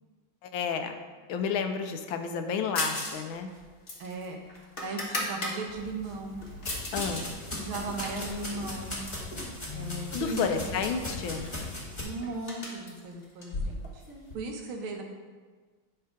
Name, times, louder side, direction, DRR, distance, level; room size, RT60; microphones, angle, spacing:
voice 1, 0.4-1.0 1.3-3.5 6.9-7.3 10.1-11.5, left 6 dB, 80° left, 7 dB, 1.4 m, -31 dB
sound 1, 2.8-3.2 3.5-5.6 6.0-7.3 7.6-9.3 10.0-10.6 10.8-10.9 11.2-14.3, left 2 dB, 35° left, 1.2 m, -37 dB
voice 2, 4.0-4.4 4.8-6.5 7.5-9.0 9.7-10.8 12.0-14.0 14.3-15.0, right 3 dB, 85° right, 1 dB, 1.8 m, -37 dB
sound 2, 5.7-12.0, left 2 dB, 15° left, 1.4 m, -38 dB
10.0 x 3.6 x 5.0 m, 1.4 s
omnidirectional pair, 2.2 m